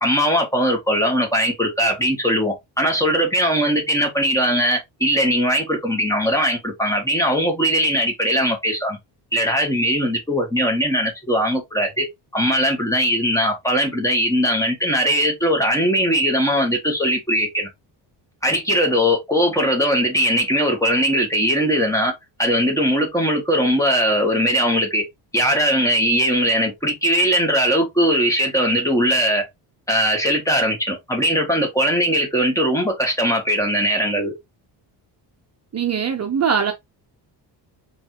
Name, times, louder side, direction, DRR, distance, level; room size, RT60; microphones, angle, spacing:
voice 1, 0.0-9.0 9.3-12.1 12.3-17.7 18.4-22.1 22.4-25.0 25.3-29.5 29.9-34.3, equal, 5° left, 1.9 m, -20 dB
voice 2, 35.7-36.7, right 7 dB, 35° right, 0.9 m, -21 dB
5.4 x 3.3 x 3.0 m
cardioid pair, 125°, 45 cm